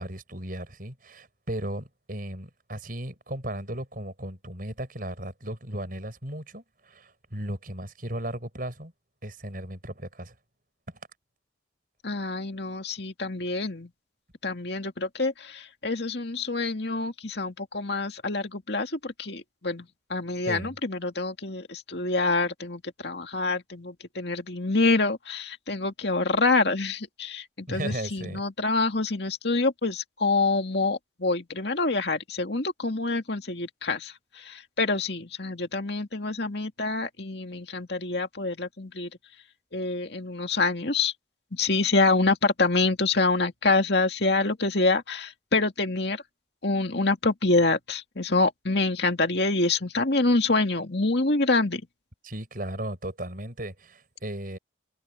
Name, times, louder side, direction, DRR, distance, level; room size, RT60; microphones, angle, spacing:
voice 1, 0.0-8.9 9.2-10.3 10.9-11.0 20.4-20.8 27.7-28.4 52.2-54.6, right 1 dB, 50° right, 6.4 m, -36 dB
voice 2, 12.0-13.9 14.4-19.9 20.1-34.1 34.5-39.1 39.7-41.1 41.6-46.2 46.6-51.8, left 3 dB, 60° left, 2.3 m, -26 dB
head